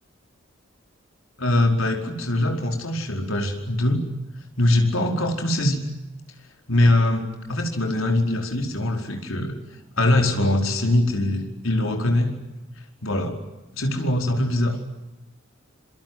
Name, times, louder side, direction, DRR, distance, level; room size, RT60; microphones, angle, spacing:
voice 1, 1.4-4.1 4.6-5.8 6.7-9.5 10.0-12.4 13.0-13.4 13.7-14.8, left 1 dB, 85° left, 4 dB, 4.8 m, -22 dB
26.5 x 25.5 x 7.8 m, 0.98 s
head